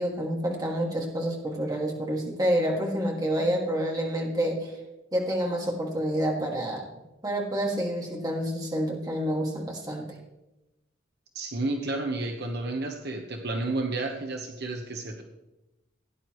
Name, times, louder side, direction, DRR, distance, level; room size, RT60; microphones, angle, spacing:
voice 1, 0.0-4.7 5.1-6.9 7.2-10.1, equal, 20° right, -1 dB, 2.1 m, -28 dB
voice 2, 11.3-15.2, right 2 dB, 55° right, 3 dB, 1.1 m, -31 dB
16.5 x 9.9 x 3.1 m, 1.0 s
head